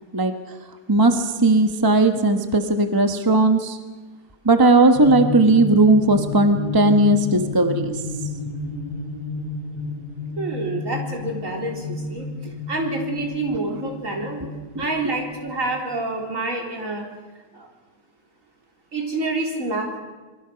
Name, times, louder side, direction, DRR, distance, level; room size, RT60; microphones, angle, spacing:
voice 1, 0.1-3.8 4.4-8.3 12.4-12.5 13.7-13.8 14.4-14.5 14.7-15.1, right 2 dB, 15° right, 7 dB, 1.0 m, -18 dB
distorted Hum, 4.9-16.1, left 3 dB, 75° right, 4.4 m, -31 dB
voice 2, 10.4-12.3 12.7-14.4 14.8-17.0 17.5-17.7 18.9-20.0, right 2 dB, 40° right, 0 dB, 4.3 m, -27 dB
28.0 x 22.5 x 5.9 m, 1.3 s
omnidirectional pair, 2.2 m